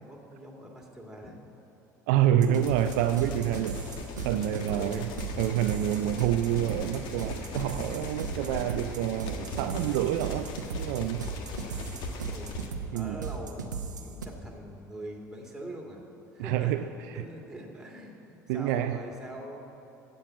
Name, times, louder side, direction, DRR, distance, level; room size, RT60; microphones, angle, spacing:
voice 1, 0.0-1.4 4.7-5.1 12.3-12.6 12.9-16.0 16.3-19.6, right 1 dB, 5° right, -1 dB, 2.5 m, -43 dB
voice 2, 2.1-3.8 4.2-5.1 5.4-11.3 12.9-13.2 16.4-16.9 18.5-19.0, right 11 dB, 60° right, 9 dB, 0.4 m, -27 dB
sound 1, 2.4-14.2, right 5 dB, 80° right, 0.9 m, -37 dB
sound 2, 2.5-12.7, left 3 dB, 50° left, 1.4 m, -40 dB
15.5 x 5.5 x 8.4 m, 2.8 s
figure-of-eight pair, 65°, 10 cm